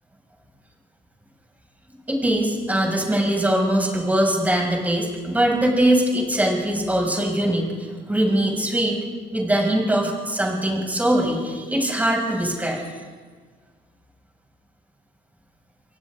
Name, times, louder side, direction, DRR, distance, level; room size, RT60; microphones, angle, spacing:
voice 1, 2.1-9.0 9.3-12.8, right 1 dB, 10° right, -1 dB, 6.8 m, -22 dB
29.5 x 24.0 x 3.9 m, 1.5 s
cardioid pair, 110°, 17 cm